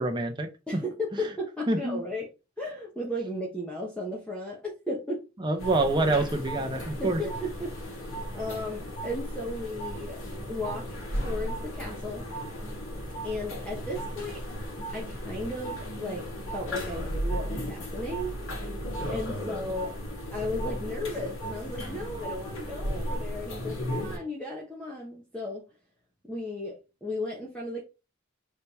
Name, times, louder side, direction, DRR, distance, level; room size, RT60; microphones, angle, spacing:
voice 1, 0.0-0.8 1.7-2.0 5.4-7.2, right 2 dB, 20° right, 0.9 m, -26 dB
voice 2, 0.7-2.3 2.6-5.2 7.0-7.7 8.3-10.2 10.5-10.9 11.1-12.3 13.2-14.4 14.9-16.3 16.5-18.4 19.1-19.9 20.3-25.6 26.3-27.8, left 1 dB, 5° left, 1.1 m, -35 dB
sound 1, 5.6-24.2, equal, 80° left, 2.1 m, -35 dB
5.0 x 3.4 x 2.8 m
head